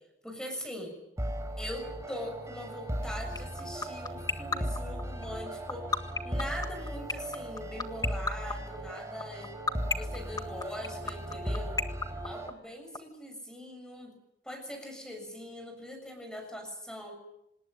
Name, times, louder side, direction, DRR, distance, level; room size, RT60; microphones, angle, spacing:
voice 1, 0.2-0.9 1.6-9.5 9.9-11.8 12.2-14.2 14.4-17.1, equal, 5° left, 5 dB, 6.8 m, -42 dB
Newtime - electronic music track, 1.2-12.5, equal, 15° right, 3.9 m, -37 dB
sound 1, 3.4-13.0, left 4 dB, 20° left, 1.7 m, -29 dB
26.0 x 20.0 x 9.1 m, 0.85 s
head